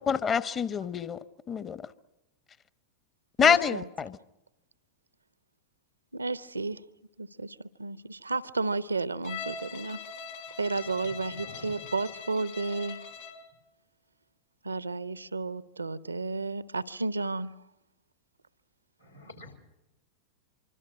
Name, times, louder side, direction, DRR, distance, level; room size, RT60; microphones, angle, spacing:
voice 1, 0.1-1.2 1.5-1.8 3.4-4.2, left 7 dB, 25° left, 1.0 m, -26 dB
voice 2, 3.4-3.9 6.1-6.8 7.2-10.0 10.6-13.0 14.6-17.5, right 3 dB, 80° right, 0.8 m, -32 dB
Bowed string instrument, 9.2-13.5, left 5 dB, 55° left, 3.0 m, -42 dB
voice 3, 10.5-11.9 19.0-19.6, left 1 dB, 85° left, 5.3 m, -50 dB
25.5 x 25.0 x 6.0 m
figure-of-eight pair, 90°, 0 cm